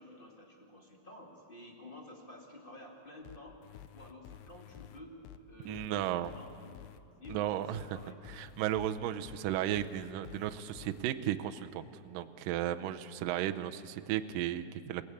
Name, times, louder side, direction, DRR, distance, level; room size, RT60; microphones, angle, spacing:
voice 1, 0.0-3.6 3.9-6.9 7.2-8.2, left 1 dB, 25° left, 0 dB, 1.1 m, -51 dB
sound 1, 3.2-11.0, left 10 dB, 85° left, 2.9 m, -51 dB
voice 2, 5.7-6.3 7.3-8.0 8.3-15.0, right 12 dB, 85° right, 8 dB, 1.9 m, -34 dB
27.5 x 17.5 x 8.6 m, 2.6 s
omnidirectional pair, 4.9 m